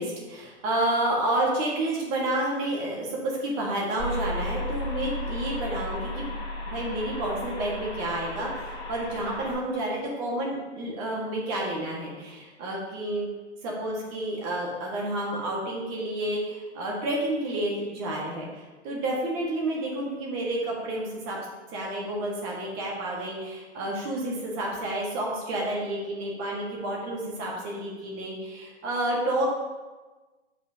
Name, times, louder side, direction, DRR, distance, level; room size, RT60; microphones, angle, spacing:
voice 1, 0.0-6.4 6.7-13.3 13.6-21.4 21.7-29.5, right 1 dB, 30° right, -3 dB, 1.6 m, -30 dB
sound 1, 4.0-9.5, left 1 dB, 10° left, 1.0 m, -34 dB
7.0 x 4.9 x 2.8 m, 1.2 s
hypercardioid pair, 135°, 35 cm